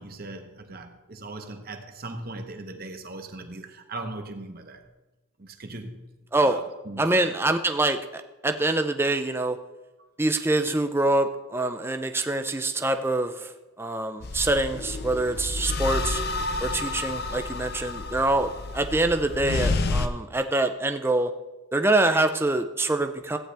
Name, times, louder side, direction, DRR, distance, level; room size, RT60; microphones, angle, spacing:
voice 1, 0.0-4.9 5.4-6.1 6.4-6.6 6.9-7.3 11.7-11.8, right 2 dB, 45° right, 1.1 m, -39 dB
voice 2, 7.0-9.6 10.2-16.2 16.6-21.3 21.7-23.4, right 2 dB, 10° right, 0.5 m, -25 dB
sound 1, 14.2-20.1, left 3 dB, 45° left, 0.6 m, -29 dB
14.5 x 9.1 x 3.4 m
head